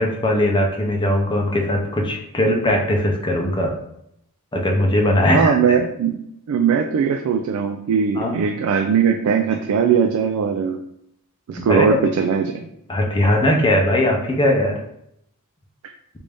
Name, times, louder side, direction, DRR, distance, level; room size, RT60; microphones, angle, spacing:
voice 1, 0.0-3.7 4.5-5.5 8.2-8.4 11.6-12.0 12.9-14.7, left 1 dB, 20° left, 1 dB, 0.5 m, -19 dB
voice 2, 5.3-6.2 6.5-10.8 11.5-12.7, right 6 dB, 70° right, 5 dB, 0.3 m, -20 dB
3.4 x 2.6 x 3.3 m, 0.75 s
head